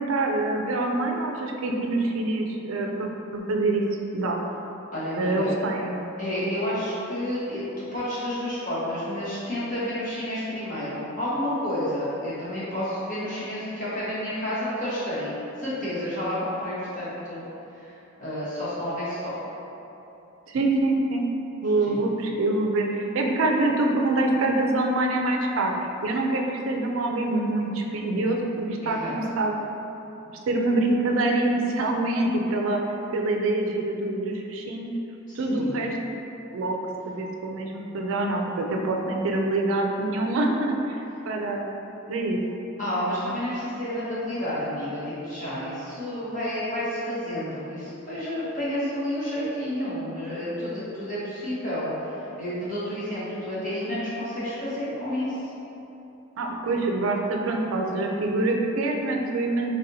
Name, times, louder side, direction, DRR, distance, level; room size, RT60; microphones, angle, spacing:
voice 1, 0.0-3.8 4.1-4.4 5.2-5.9 20.5-21.3 21.6-29.5 30.5-34.9 35.3-36.0 36.5-36.8 37.1-41.6 42.1-42.4 56.4-59.7, right 2 dB, 75° right, 1 dB, 0.4 m, -25 dB
voice 2, 4.9-5.6 6.2-17.4 17.7-17.9 18.2-19.3 21.9-22.0 28.7-29.2 35.3-35.8 42.8-52.1 52.4-55.5, left 1 dB, 40° left, -11 dB, 1.3 m, -30 dB
4.0 x 3.4 x 2.7 m, 3.0 s
head